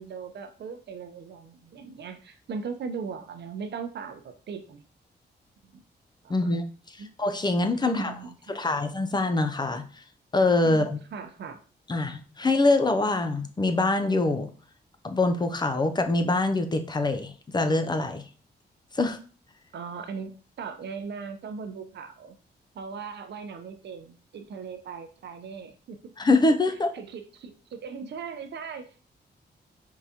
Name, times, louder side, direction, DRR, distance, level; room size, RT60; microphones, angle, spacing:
voice 1, 0.0-4.8 5.7-5.8 6.2-6.6 7.0-7.1 7.8-8.8 10.6-11.6 19.7-22.4 22.7-26.1 26.9-29.0, right 5 dB, 75° right, 8 dB, 0.6 m, -39 dB
voice 2, 6.3-6.7 7.2-8.2 8.5-9.8 10.3-11.0 11.9-14.5 15.0-18.2 18.9-19.2 26.2-26.9, left 2 dB, 25° left, 7 dB, 0.5 m, -24 dB
4.5 x 3.8 x 2.8 m, 0.39 s
wide cardioid pair, 125°, 18 cm